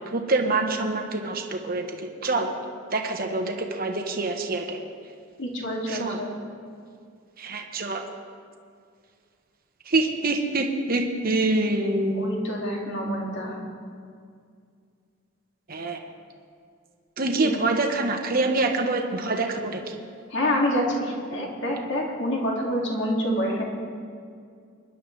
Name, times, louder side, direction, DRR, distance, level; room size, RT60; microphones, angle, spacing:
voice 1, 0.0-2.5 2.9-4.8 5.9-6.2 7.4-8.0 9.9-12.3 15.7-16.0 17.2-20.0, right 2 dB, 45° right, 3 dB, 1.2 m, -26 dB
voice 2, 5.4-6.3 12.2-13.6 17.3-17.5 20.3-23.6, equal, 60° left, -2 dB, 2.4 m, -27 dB
23.5 x 11.0 x 3.3 m, 2.3 s
head